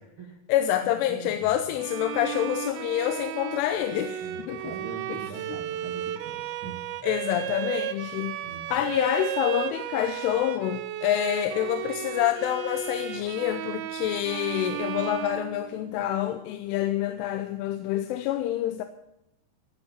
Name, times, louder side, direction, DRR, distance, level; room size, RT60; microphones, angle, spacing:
voice 1, 0.5-4.7 7.0-8.4 8.7-18.8, left 12 dB, 85° left, 3.3 m, -27 dB
voice 2, 1.1-1.8 4.2-7.1 8.4-8.9, right 4 dB, 55° right, 1.4 m, -42 dB
Bowed string instrument, 1.8-16.1, right 12 dB, 80° right, 2.9 m, -34 dB
16.0 x 10.0 x 7.4 m
omnidirectional pair, 5.5 m